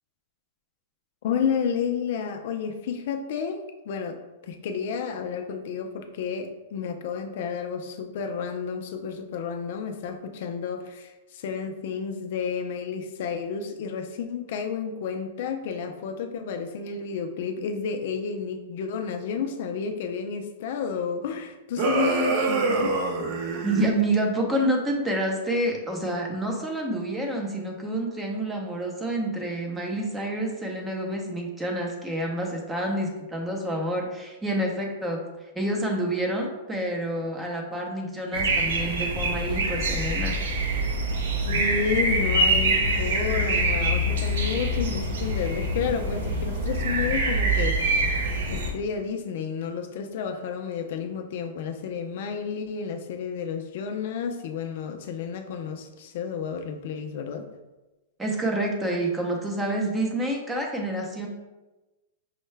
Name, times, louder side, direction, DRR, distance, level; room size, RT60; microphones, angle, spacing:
voice 1, 1.2-4.2 4.4-22.9 41.4-47.8 48.5-57.5, left 6 dB, 60° left, 5 dB, 0.4 m, -31 dB
sound 1, 21.8-23.9, right 3 dB, 45° right, 0.7 m, -25 dB
voice 2, 23.5-35.2 35.5-40.4 58.2-61.3, right 1 dB, 10° right, 1 dB, 0.6 m, -28 dB
sound 2, 38.3-48.7, right 1 dB, 80° right, 0.7 m, -25 dB
5.4 x 2.2 x 3.2 m, 1.1 s
hypercardioid pair, 145°, 0 cm